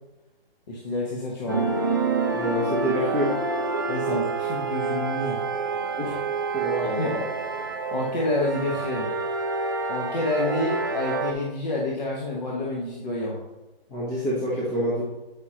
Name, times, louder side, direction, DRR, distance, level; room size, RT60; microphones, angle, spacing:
voice 1, 0.7-1.7 3.9-5.4 6.8-7.2 7.9-9.1 9.9-13.4, left 2 dB, 45° left, -3 dB, 1.2 m, -28 dB
sound 1, 1.5-11.3, right 4 dB, 25° right, 0.4 m, -28 dB
voice 2, 2.3-3.3 6.0-6.2 6.5-7.2 13.9-15.0, equal, 10° left, -7 dB, 0.7 m, -27 dB
8.4 x 5.1 x 2.9 m, 1.0 s
figure-of-eight pair, 145°, 30 cm